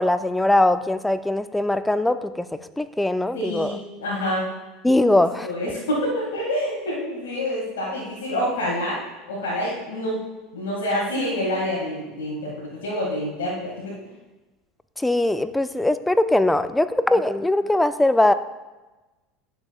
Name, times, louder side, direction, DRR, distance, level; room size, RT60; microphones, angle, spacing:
voice 1, 0.0-2.5 2.8-3.8 4.8-5.5 15.0-18.3, left 1 dB, 5° left, 12 dB, 0.4 m, -21 dB
voice 2, 3.3-4.5 5.1-9.0 9.3-10.2 10.5-13.9, left 1 dB, 85° left, -7 dB, 1.9 m, -27 dB
11.0 x 6.8 x 2.4 m, 1.1 s
hypercardioid pair, 95°, 0 cm